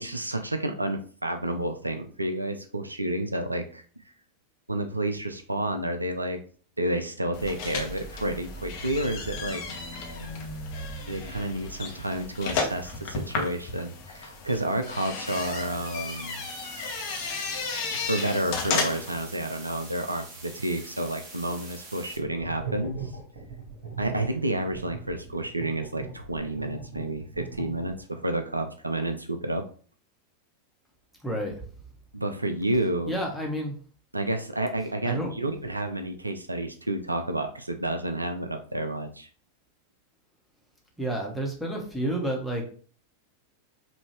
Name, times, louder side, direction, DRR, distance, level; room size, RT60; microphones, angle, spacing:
voice 1, 0.0-3.8 4.7-6.4 6.8-9.6 11.1-16.4 17.9-23.0 24.0-29.6 32.1-33.2 34.1-39.3, right 1 dB, 85° right, 7 dB, 0.5 m, -30 dB
sound 1, 7.3-19.2, left 4 dB, 45° left, 1.0 m, -34 dB
sound 2, 15.3-22.2, right 2 dB, 30° right, 1.8 m, -45 dB
sound 3, 22.1-28.2, right 5 dB, 60° right, 2.1 m, -39 dB
voice 2, 31.2-31.5 33.1-33.7 35.0-35.3 41.0-42.7, right 1 dB, ahead, -1 dB, 1.4 m, -30 dB
5.1 x 2.8 x 3.3 m, 0.42 s
figure-of-eight pair, 90°, 0 cm